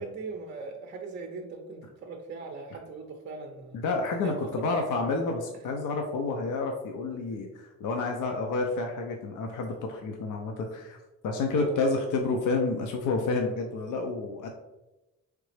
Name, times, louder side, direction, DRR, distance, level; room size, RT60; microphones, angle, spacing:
voice 1, 0.0-3.8 4.2-4.8 11.6-11.9, right 4 dB, 40° right, 3 dB, 0.5 m, -39 dB
voice 2, 3.7-11.0 11.2-14.5, left 3 dB, 85° left, 2 dB, 0.6 m, -29 dB
3.9 x 3.3 x 3.2 m, 1.0 s
cardioid pair, 115°, 30 cm